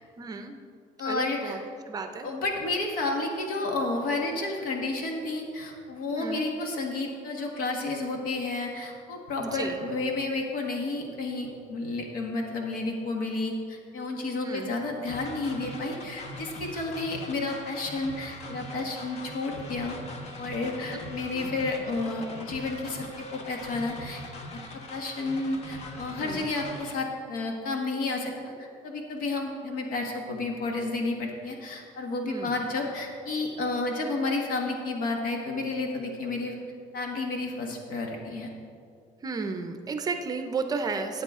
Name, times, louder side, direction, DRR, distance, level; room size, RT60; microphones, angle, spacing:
voice 1, 0.2-0.5 1.0-1.6 1.9-2.3 6.1-6.4 9.4-9.8 14.4-14.7 20.9-21.0 21.3-21.5 26.2-26.5 32.2-32.6 39.2-41.2, right 4 dB, 25° right, 7 dB, 0.6 m, -33 dB
voice 2, 1.0-1.6 2.2-20.0 20.4-24.2 24.9-28.3 28.6-36.6 36.9-38.5, left 3 dB, 70° left, 1 dB, 1.6 m, -31 dB
sound 1, 15.1-26.9, left 2 dB, 45° left, 1.2 m, -41 dB
13.5 x 8.7 x 3.7 m, 2.3 s
cardioid pair, 165°, 15 cm